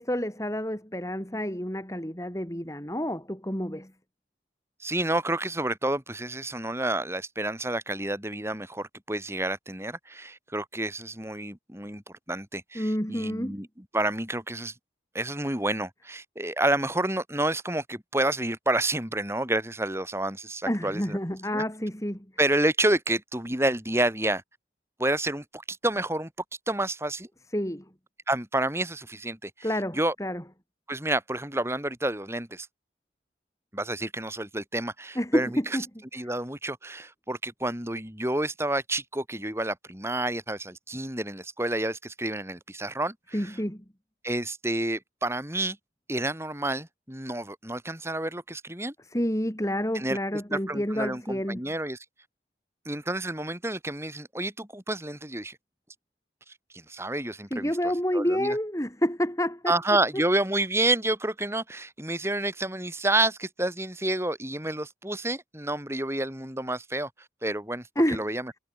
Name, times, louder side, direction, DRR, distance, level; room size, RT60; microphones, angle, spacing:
voice 1, 0.0-3.9 12.7-13.6 20.7-22.2 27.5-27.8 29.6-30.4 35.1-35.8 43.3-43.8 49.1-51.6 57.5-59.7 60.1-60.2 67.9-68.3, equal, 15° left, 5.1 m, -29 dB
voice 2, 4.8-12.0 12.3-13.7 13.9-14.7 15.1-21.2 21.5-21.6 22.4-24.4 25.0-26.3 26.7-27.3 28.3-29.7 29.9-30.1 30.9-32.7 33.7-35.5 36.1-43.5 44.2-45.8 46.1-48.9 49.9-50.2 50.5-52.0 52.9-55.6 56.7-57.7 58.1-58.6 59.7-67.1 67.4-68.5, right 1 dB, 15° right, 7.9 m, -29 dB
head